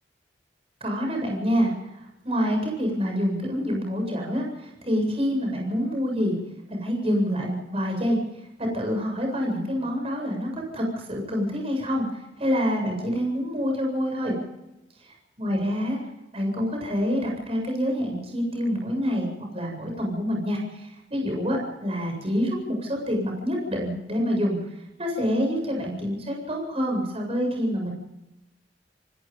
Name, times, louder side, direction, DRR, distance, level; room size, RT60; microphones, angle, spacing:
voice 1, 0.8-1.7 2.2-6.4 6.7-8.2 8.6-14.3 15.0-15.1 15.4-16.0 16.3-24.6 25.0-27.9, equal, 35° right, 1 dB, 7.9 m, -27 dB
29.5 x 17.0 x 5.4 m, 0.92 s
head